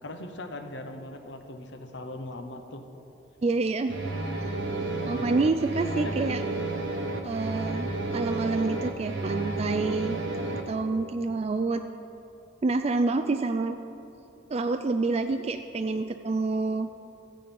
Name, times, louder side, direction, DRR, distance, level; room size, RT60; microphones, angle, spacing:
voice 1, 0.0-2.9 5.0-5.3 5.9-6.1, left 2 dB, 65° left, 6 dB, 1.0 m, -39 dB
voice 2, 3.4-4.0 5.1-6.4 7.2-10.2 10.6-11.8 12.6-13.8 14.5-16.9, right 3 dB, 35° right, 7 dB, 0.4 m, -27 dB
sound 1, 3.9-10.6, right 2 dB, 70° right, 1.4 m, -31 dB
14.0 x 9.2 x 5.4 m, 3.0 s
head